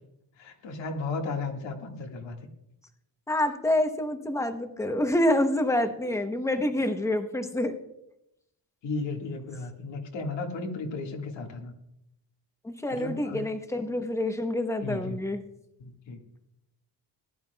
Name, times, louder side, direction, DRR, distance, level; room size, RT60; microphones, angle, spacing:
voice 1, 0.4-2.4 8.8-11.8 12.9-13.5 14.8-15.2 15.8-16.2, left 3 dB, 90° left, 2 dB, 1.9 m, -34 dB
voice 2, 3.3-7.8 12.6-15.4, left 1 dB, 5° left, 7 dB, 0.8 m, -27 dB
19.0 x 11.0 x 2.3 m, 0.81 s
wide cardioid pair, 145°, 43 cm